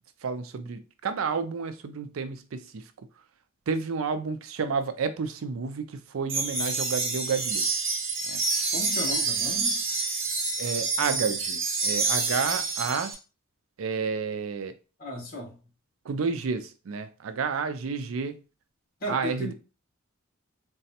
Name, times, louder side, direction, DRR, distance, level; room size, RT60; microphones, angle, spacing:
voice 1, 0.2-3.1 3.7-7.7 8.3-8.7 10.6-13.1 13.8-14.8 16.0-18.4 19.1-19.5, right 5 dB, 85° right, 0.4 m, -31 dB
sound 1, 6.3-13.1, right 3 dB, 65° right, 1.0 m, -28 dB
voice 2, 8.7-9.8 15.0-15.5 19.0-19.5, left 1 dB, 45° left, 1.2 m, -35 dB
3.9 x 2.3 x 2.7 m
head